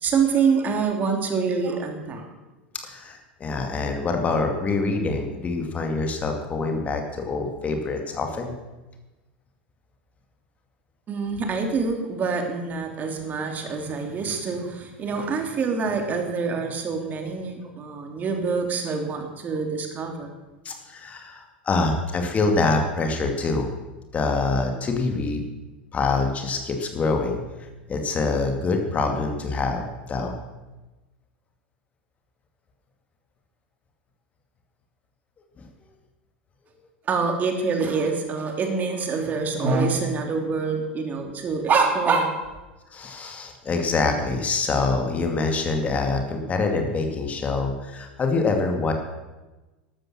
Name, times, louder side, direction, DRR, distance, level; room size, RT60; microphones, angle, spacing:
voice 1, 0.0-2.3 11.1-20.3 37.1-42.3, right 5 dB, 30° right, 4 dB, 2.8 m, -25 dB
voice 2, 2.8-8.5 20.6-23.7 24.1-25.4 25.9-27.4 27.9-30.4 35.6-35.7 42.9-48.9, left 3 dB, 25° left, 4 dB, 2.3 m, -25 dB
14.5 x 12.5 x 6.3 m, 1.1 s
figure-of-eight pair, 85°, 6 cm